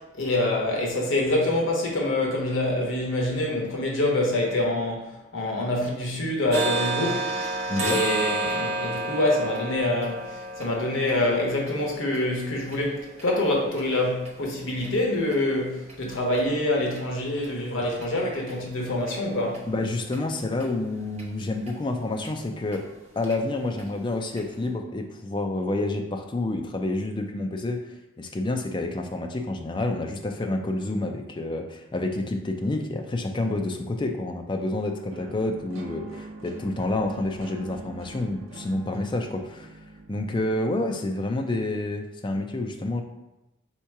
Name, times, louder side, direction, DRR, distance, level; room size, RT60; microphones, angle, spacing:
voice 1, 0.0-7.3 7.8-19.7, left 1 dB, 75° left, -1 dB, 1.0 m, -26 dB
sound 1, 6.5-14.3 14.8-14.9 15.3-15.5 15.9-16.0 16.4-16.5 17.0-17.1 17.4-17.5 18.0-18.1 18.5-18.6 19.1-19.2 19.5-19.6 20.1-20.2 20.6-20.7 21.2-21.3 21.7-21.8 22.2-22.3 22.7-22.8 23.2-23.3 23.8-23.9 24.4-24.5, right 2 dB, 35° right, 0.7 m, -31 dB
voice 2, 7.7-8.0 19.7-22.8 23.2-27.8 28.2-39.7 40.1-43.0, left 2 dB, 25° left, 3 dB, 0.3 m, -28 dB
sound 2, 35.1-41.1, right 2 dB, 90° right, 0.6 m, -43 dB
3.6 x 2.9 x 4.6 m, 0.96 s
head